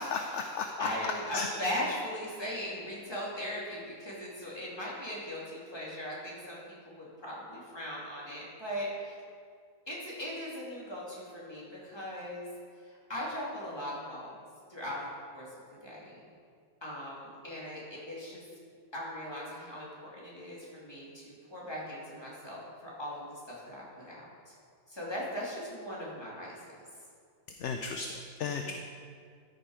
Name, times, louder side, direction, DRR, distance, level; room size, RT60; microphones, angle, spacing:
voice 1, 0.0-0.9 1.3-1.5 27.6-28.7, left 5 dB, 65° left, 5 dB, 0.9 m, -34 dB
voice 2, 0.8-9.2 9.9-12.5 12.9-14.4 14.7-15.0 15.3-15.5 15.8-16.2 16.8-18.4 18.9-23.4 23.7-24.2 24.5-24.6 24.9-26.5 28.5-28.6, equal, 15° left, -6 dB, 2.7 m, -39 dB
13.5 x 6.7 x 5.0 m, 2.2 s
omnidirectional pair, 1.5 m